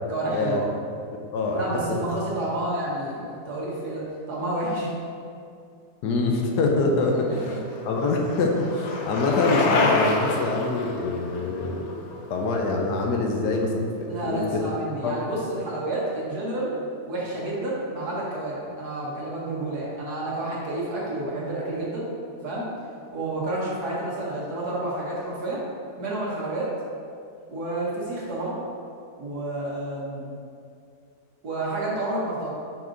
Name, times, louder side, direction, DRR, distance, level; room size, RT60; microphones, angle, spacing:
voice 1, 0.1-0.7 1.5-4.9 7.5-7.6 11.3-11.5 14.1-16.7 17.1-22.1 22.4-22.7 23.1-25.6 26.0-26.7 27.5-28.6 29.2-30.3 31.4-32.6, right 1 dB, 70° right, -6 dB, 1.8 m, -30 dB
voice 2, 1.3-1.8 6.0-7.6 7.8-11.8 12.3-14.6 15.0-15.2, left 3 dB, 80° left, 1 dB, 1.3 m, -24 dB
Bicycle, 7.2-13.1, left 3 dB, 60° left, 0.7 m, -28 dB
5.8 x 5.2 x 3.8 m, 2.4 s
omnidirectional pair, 1.8 m